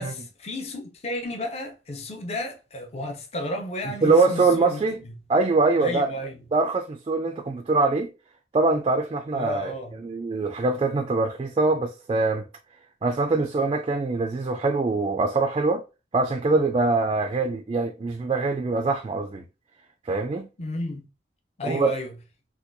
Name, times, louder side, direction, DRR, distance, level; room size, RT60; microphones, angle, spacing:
voice 1, 0.0-5.1 5.8-6.4 9.3-9.9 20.6-21.0 21.6-22.1, left 1 dB, 35° left, 0.6 m, -33 dB
voice 2, 4.0-5.0 5.3-6.1 6.5-8.1 8.5-9.7 10.0-12.5 13.0-15.8 16.1-19.4 20.0-20.5 21.6-21.9, right 3 dB, 30° right, 0.3 m, -23 dB
4.2 x 2.2 x 2.6 m
head